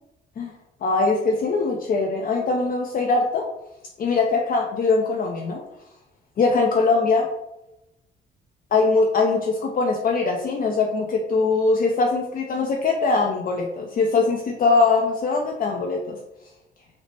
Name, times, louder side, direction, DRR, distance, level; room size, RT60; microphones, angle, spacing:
voice 1, 0.8-3.5 4.0-5.6 6.4-7.3 8.7-16.2, left 3 dB, 45° left, 0 dB, 0.4 m, -21 dB
3.9 x 2.0 x 3.3 m, 0.91 s
cardioid pair, 90°, 20 cm